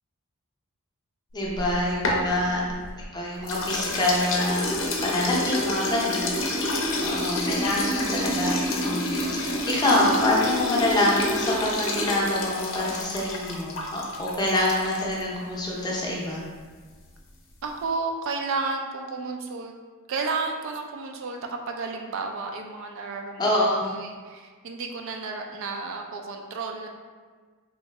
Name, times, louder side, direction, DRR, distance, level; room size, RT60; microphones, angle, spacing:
voice 1, 1.3-2.6 3.0-4.7 5.0-6.7 7.0-16.4 23.4-23.9, left 1 dB, 20° left, -4 dB, 0.6 m, -26 dB
sound 1, 1.4-3.0 3.5-15.2, left 1 dB, 60° left, 0.6 m, -28 dB
voice 2, 6.9-7.4 17.6-19.7 20.1-26.9, right 4 dB, 60° right, 2 dB, 0.4 m, -32 dB
3.1 x 2.7 x 3.3 m, 1.5 s
head